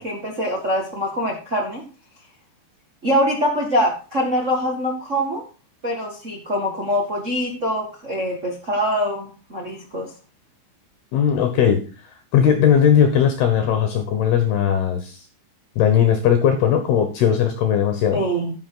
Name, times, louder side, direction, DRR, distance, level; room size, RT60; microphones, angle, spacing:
voice 1, 0.0-1.8 3.0-5.4 5.8-10.1 18.1-18.5, equal, 75° right, 0 dB, 0.7 m, -24 dB
voice 2, 11.1-11.8 12.3-15.2 15.8-18.2, left 8 dB, 70° left, 7 dB, 3.0 m, -18 dB
10.5 x 10.0 x 3.9 m, 0.32 s
omnidirectional pair, 5.3 m